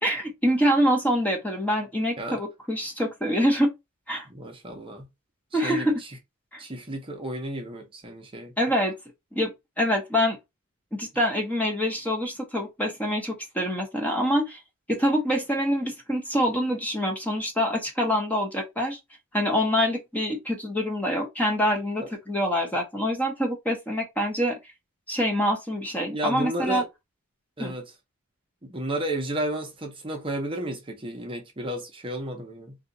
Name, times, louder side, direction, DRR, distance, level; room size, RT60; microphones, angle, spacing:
voice 1, 0.0-3.7 4.1-4.3 5.5-6.0 6.5-6.6 8.6-8.9 9.3-10.4 10.9-14.6 14.9-19.0 19.3-24.6 25.1-26.8 27.6-27.7, equal, 5° left, 0.7 m, -25 dB
voice 2, 4.3-5.1 5.5-6.1 6.6-8.5 22.0-22.1 26.1-26.8 27.6-27.9 28.6-32.8, right 1 dB, 25° right, 0.7 m, -32 dB
2.7 x 2.4 x 3.7 m
head